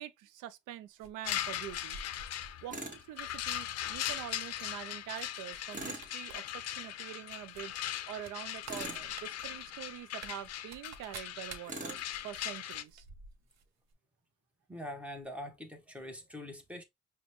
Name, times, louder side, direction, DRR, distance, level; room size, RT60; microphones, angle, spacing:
voice 1, 0.0-2.0 2.6-7.8 8.1-13.0, right 11 dB, 85° right, 0.5 m, -45 dB
sound 1, 1.0-2.6 3.1-3.4 3.7-4.5 5.1-5.3 5.5-6.4 6.7-6.8 7.5-13.7 13.9-14.0, right 4 dB, 60° right, 0.8 m, -51 dB
sound 2, 1.2-12.8, left 11 dB, 55° left, 0.5 m, -39 dB
Tools, 2.7-3.0 5.7-6.1 8.7-9.1 11.7-12.1, right 2 dB, 25° right, 1.3 m, -41 dB
voice 2, 14.7-16.8, left 1 dB, 5° right, 1.0 m, -43 dB
5.0 x 2.2 x 3.0 m
cardioid pair, 90°, 30 cm